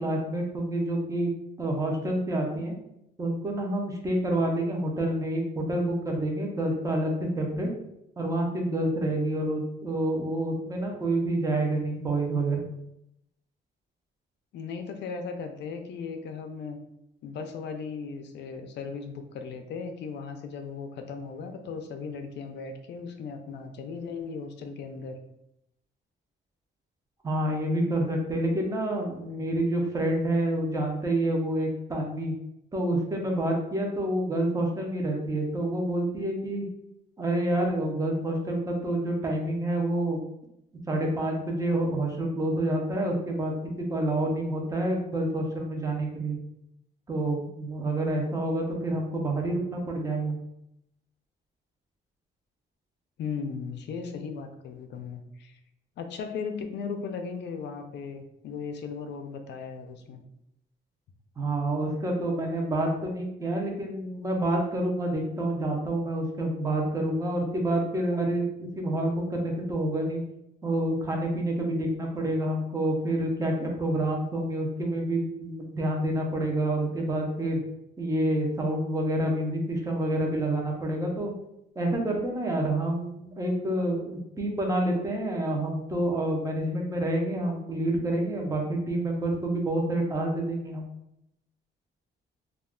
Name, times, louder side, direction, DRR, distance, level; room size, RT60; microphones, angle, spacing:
voice 1, 0.0-1.3 1.6-2.7 3.2-7.7 8.2-12.7 27.2-32.3 32.7-36.7 37.2-40.2 40.9-46.4 47.1-50.4 61.4-70.2 70.6-77.6 78.0-81.3 81.8-90.9, right 1 dB, 20° right, 1 dB, 0.5 m, -28 dB
voice 2, 14.5-16.8 17.2-25.2 53.2-55.6 56.0-60.2, left 5 dB, 70° left, 6 dB, 0.4 m, -37 dB
2.4 x 2.2 x 3.5 m, 0.81 s
cardioid pair, 140°, 18 cm